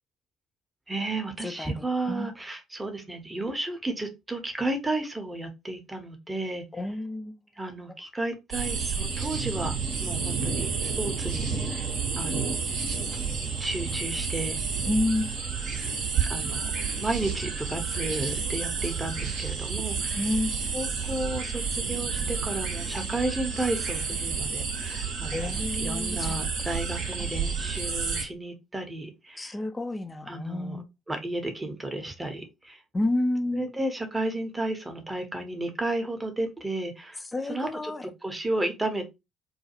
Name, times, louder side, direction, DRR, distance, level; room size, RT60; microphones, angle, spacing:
voice 1, 0.9-6.9 7.6-11.9 12.2-12.5 13.6-14.6 16.2-16.7 17.0-20.4 20.7-29.6 30.3-32.8 33.5-39.1, right 2 dB, 15° right, 0.7 m, -33 dB
voice 2, 1.4-1.7 2.1-2.3 6.7-7.3 14.9-15.5 20.2-20.6 25.3-26.3 29.4-30.8 32.9-33.7 37.3-38.1, left 2 dB, 20° left, 0.3 m, -29 dB
sound 1, 8.5-28.2, right 5 dB, 65° right, 0.7 m, -30 dB
2.4 x 2.3 x 2.7 m
figure-of-eight pair, 50°, 0 cm